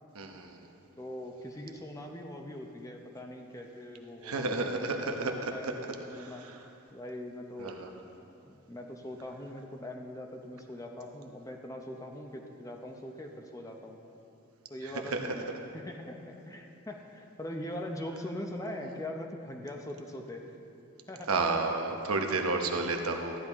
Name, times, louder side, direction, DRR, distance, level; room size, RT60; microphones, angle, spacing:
voice 1, 0.2-0.6 4.2-5.7 7.6-7.9 15.1-15.2 21.3-23.4, right 3 dB, 90° right, 3 dB, 1.0 m, -31 dB
voice 2, 1.0-6.4 6.9-7.8 8.4-14.0 14.7-16.2 16.5-20.4 21.1-21.3, left 1 dB, 15° left, 2 dB, 0.7 m, -42 dB
14.0 x 10.5 x 3.6 m, 2.8 s
head